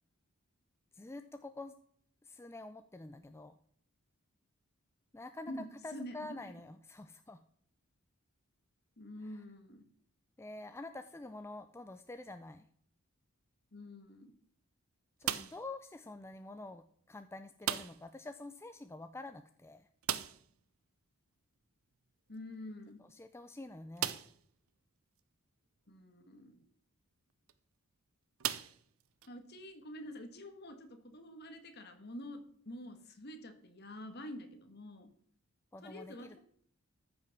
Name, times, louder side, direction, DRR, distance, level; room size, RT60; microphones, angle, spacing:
voice 1, 0.9-1.7 2.2-3.5 5.1-5.5 5.8-7.4 10.4-12.7 15.2-19.9 23.0-24.2 35.7-36.4, left 2 dB, 10° left, 9 dB, 0.4 m, -47 dB
voice 2, 5.5-6.4 9.0-9.8 13.7-14.3 22.3-23.0 25.9-26.6 29.3-35.1 35.8-36.4, left 1 dB, 50° left, 7 dB, 1.6 m, -47 dB
sound 1, 15.2-15.8 17.6-18.2 18.4-18.5 18.9-19.0 20.0-20.6 22.3-22.4 23.1-23.2 24.0-24.5 25.2-25.3 27.3-27.5 28.4-29.3, right 10 dB, 75° right, 0.7 m, -37 dB
13.5 x 6.0 x 5.9 m, 0.64 s
head